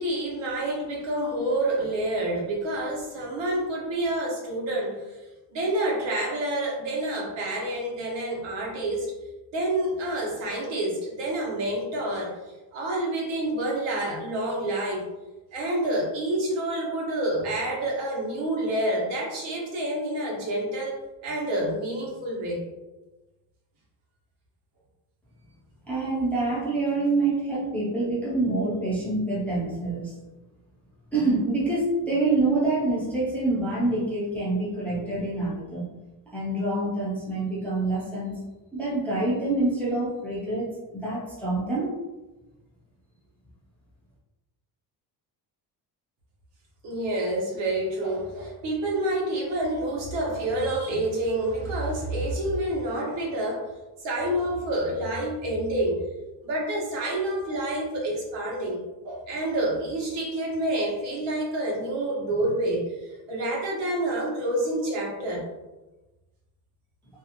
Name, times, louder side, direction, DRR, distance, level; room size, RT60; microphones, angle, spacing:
voice 1, 0.0-5.2 5.5-9.1 9.5-12.3 12.7-15.0 15.5-21.0 21.2-22.7 46.8-53.6 54.0-56.0 56.4-65.4, right 1 dB, 80° right, -3 dB, 1.0 m, -28 dB
voice 2, 25.9-30.2 31.1-35.9 36.3-38.4 38.7-41.9, right 2 dB, 5° left, -7 dB, 0.3 m, -26 dB
2.6 x 2.4 x 2.7 m, 1.1 s
cardioid pair, 175°, 44 cm